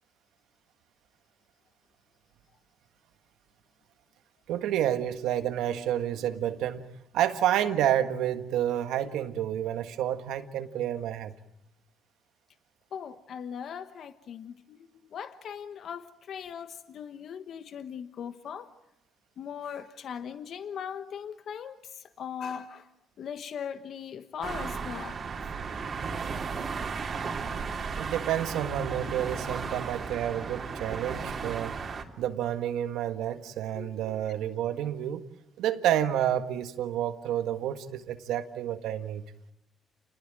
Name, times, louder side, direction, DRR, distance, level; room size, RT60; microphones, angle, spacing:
voice 1, 4.5-6.9 7.1-11.3 28.0-31.8 32.2-35.2 35.6-39.2, right 11 dB, 90° right, 1.7 m, -29 dB
voice 2, 12.9-14.8 15.0-18.7 19.4-22.9 23.2-25.2 27.8-27.9 33.7-33.9, left 7 dB, 65° left, 1.2 m, -39 dB
sound 1, 24.4-32.0, right 5 dB, 50° right, 3.4 m, -35 dB
29.5 x 20.5 x 9.1 m
cardioid pair, 90°, 0 cm